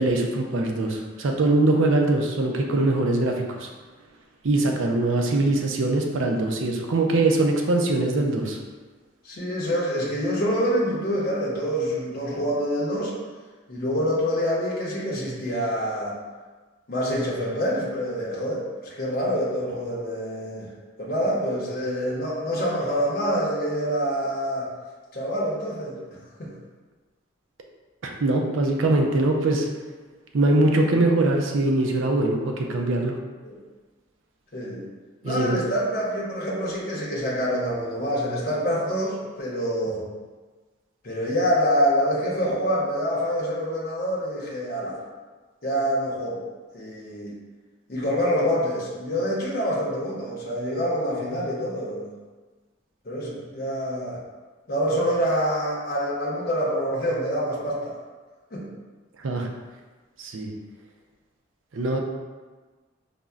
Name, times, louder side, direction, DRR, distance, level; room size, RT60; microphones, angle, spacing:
voice 1, 0.0-3.7 4.4-8.6 28.0-29.7 30.3-33.2 35.2-35.6 59.2-59.5 60.2-60.5 61.7-62.0, right 2 dB, 85° right, 2 dB, 0.5 m, -22 dB
voice 2, 9.2-13.2 13.7-16.2 16.9-20.7 21.0-24.7 25.1-26.0 26.4-26.5 33.4-33.6 34.5-34.9 35.2-40.0 41.0-45.0 45.6-46.4 46.7-47.4 47.9-52.1 53.0-54.2 54.7-58.0 58.5-58.7, equal, 50° left, -5 dB, 0.7 m, -26 dB
5.2 x 2.1 x 2.3 m, 1.3 s
head